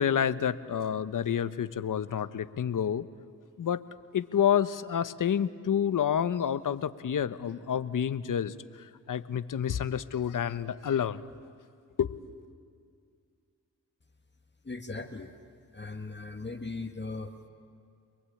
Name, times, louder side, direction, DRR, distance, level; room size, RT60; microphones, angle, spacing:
voice 1, 0.0-3.1 3.6-3.8 4.1-11.2 12.0-12.2, left 8 dB, 70° left, 14 dB, 1.0 m, -29 dB
voice 2, 14.6-15.3 15.7-17.5, left 3 dB, 30° left, 4 dB, 1.8 m, -38 dB
29.5 x 21.5 x 8.6 m, 2.3 s
cardioid pair, 50°, 33 cm